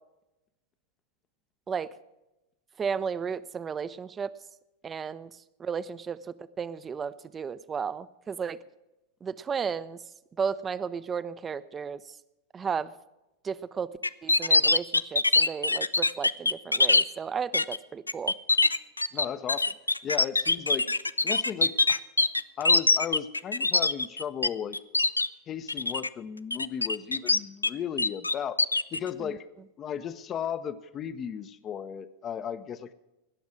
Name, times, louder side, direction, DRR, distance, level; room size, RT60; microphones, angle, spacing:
voice 1, 2.8-4.3 4.8-5.3 5.6-8.6 9.2-10.0 10.4-12.2 12.5-12.9 13.4-13.9 14.2-18.3 29.2-29.4, right 6 dB, 20° right, 17 dB, 0.5 m, -34 dB
sound 1, 14.0-17.0 17.5-17.8 18.1-24.5 24.7-25.3 25.7-26.1 26.5-27.7 28.0-29.0, left 3 dB, 80° left, 0.4 m, -23 dB
voice 2, 19.1-19.7 20.0-20.9 21.2-22.0 22.6-24.8 25.5-28.6 28.9-29.5 29.8-32.9, left 8 dB, 30° left, 12 dB, 0.6 m, -35 dB
19.0 x 7.2 x 6.3 m, 0.97 s
figure-of-eight pair, 90°, 0 cm